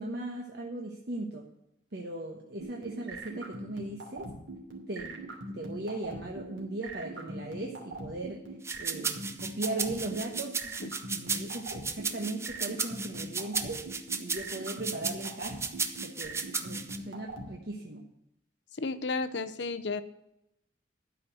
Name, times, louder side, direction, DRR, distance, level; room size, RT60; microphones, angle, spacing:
voice 1, 0.0-1.4 1.9-4.3 4.9-5.2 5.5-10.7 11.1-13.8 14.2-18.0, right 2 dB, 55° right, 0 dB, 1.2 m, -38 dB
sound 1, 2.6-17.4, right 2 dB, 90° right, 2.8 m, -41 dB
sound 2, 8.6-17.0, right 4 dB, 15° right, 0.5 m, -34 dB
voice 2, 18.8-20.0, left 3 dB, 65° left, 12 dB, 0.7 m, -32 dB
12.5 x 5.1 x 7.7 m, 0.85 s
head